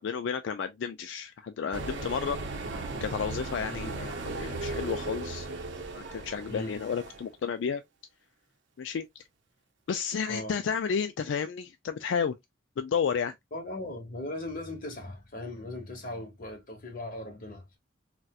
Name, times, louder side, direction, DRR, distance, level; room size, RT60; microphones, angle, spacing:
voice 1, 0.0-2.4 3.0-5.5 5.9-7.8 8.8-9.2 9.9-12.4 12.8-13.3, left 6 dB, 80° left, 0.3 m, -32 dB
sound 1, 1.7-7.3, right 2 dB, 75° right, 0.7 m, -37 dB
voice 2, 3.7-4.0 6.5-6.8 10.3-10.6 13.5-17.8, left 1 dB, 50° left, 1.1 m, -39 dB
4.1 x 2.2 x 2.3 m
head